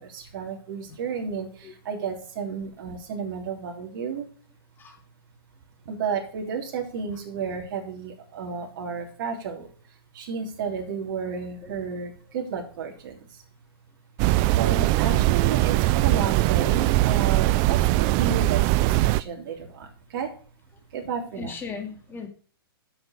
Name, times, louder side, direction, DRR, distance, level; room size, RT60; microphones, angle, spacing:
voice 1, 0.0-4.3 5.8-13.4 14.5-20.3 20.9-21.5, right 6 dB, 55° right, 1 dB, 3.2 m, -32 dB
sound 1, 14.2-19.2, right 18 dB, 30° right, 0.4 m, -21 dB
voice 2, 21.4-22.3, left 5 dB, 15° left, 3 dB, 2.3 m, -37 dB
8.5 x 7.2 x 7.1 m, 0.42 s
hypercardioid pair, 130°, 13 cm